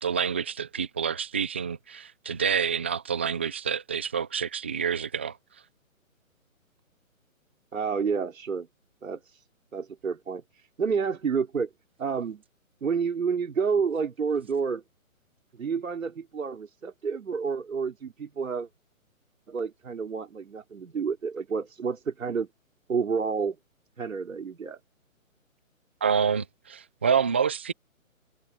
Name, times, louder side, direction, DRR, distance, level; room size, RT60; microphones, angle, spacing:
voice 1, 0.0-5.4 26.0-27.7, right 7 dB, 10° right, 0.5 m, -27 dB
voice 2, 7.7-8.7 9.0-9.4 9.7-11.7 12.0-12.4 12.8-14.8 15.5-18.7 19.5-22.5 22.9-23.6 24.0-24.8, right 5 dB, 65° right, 4.1 m, -29 dB
figure-of-eight pair, 150°, 42 cm